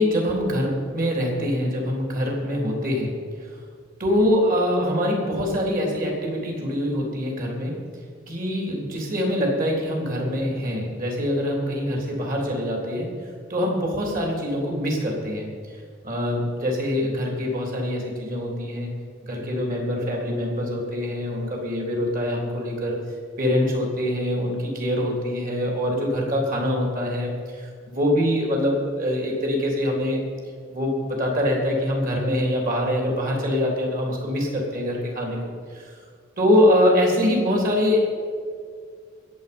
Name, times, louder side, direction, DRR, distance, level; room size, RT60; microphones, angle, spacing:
voice 1, 0.0-3.1 4.0-7.8 8.3-13.1 13.5-15.5 16.0-18.9 19.2-23.0 23.4-30.2 30.7-35.4 35.7-35.9 36.4-38.0, left 1 dB, 45° right, 0 dB, 3.6 m, -24 dB
21.0 x 8.0 x 5.5 m, 2.1 s
head